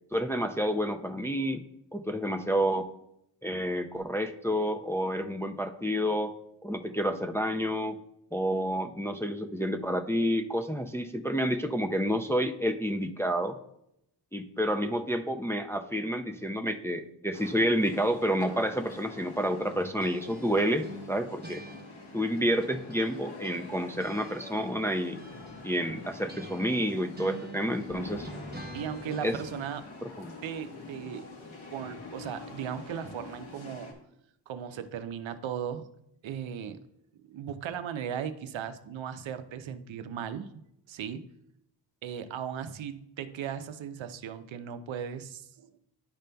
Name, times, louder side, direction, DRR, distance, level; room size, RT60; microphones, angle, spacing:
voice 1, 0.1-1.6 1.9-2.9 3.4-6.3 6.6-8.0 8.3-13.6 14.3-21.6 22.1-25.2 25.6-28.3 29.2-29.4 30.0-30.3, equal, 5° left, 5 dB, 0.3 m, -29 dB
sound 1, 17.3-33.9, left 3 dB, 80° left, 1.4 m, -45 dB
sound 2, 19.7-23.2 23.4-29.8, right 1 dB, 20° right, 0.8 m, -47 dB
voice 2, 28.7-29.9 30.4-31.3 31.7-34.0 34.5-35.9 36.2-36.8 37.3-40.5 40.9-41.2 42.0-45.7, right 8 dB, 90° right, 11 dB, 0.6 m, -37 dB
10.5 x 5.2 x 2.2 m, 0.79 s
cardioid pair, 65°, 45 cm